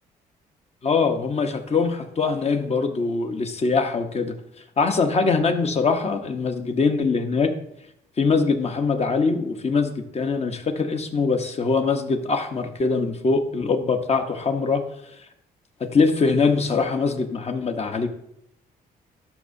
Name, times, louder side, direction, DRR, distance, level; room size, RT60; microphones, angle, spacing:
voice 1, 0.8-4.3 4.8-7.5 8.2-14.8 15.8-18.1, left 4 dB, 40° left, 7 dB, 1.0 m, -22 dB
12.0 x 5.6 x 2.7 m, 0.76 s
cardioid pair, 75°, 16 cm